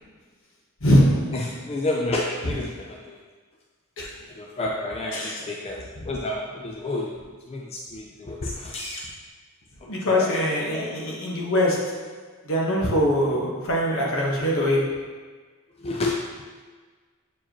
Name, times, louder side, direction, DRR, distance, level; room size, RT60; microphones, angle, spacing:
voice 1, 0.8-1.4 4.0-4.1 5.1-5.5 9.9-12.1 12.4-15.0, equal, 65° left, -2 dB, 1.2 m, -23 dB
voice 2, 1.3-3.2 4.4-7.1 7.5-9.0 9.8-10.3 10.7-10.9 15.8-16.2, left 2 dB, 25° left, -1 dB, 0.4 m, -30 dB
7.2 x 4.7 x 3.0 m, 1.4 s
head